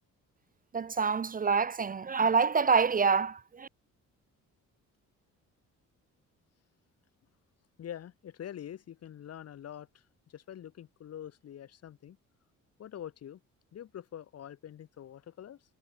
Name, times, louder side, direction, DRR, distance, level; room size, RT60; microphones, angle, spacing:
voice 1, 0.7-3.7, right 5 dB, 30° right, 0.6 m, -26 dB
voice 2, 7.8-12.2 12.8-13.4 13.7-15.6, left 10 dB, 55° left, 1.1 m, -45 dB
cardioid pair, 90°, 30 cm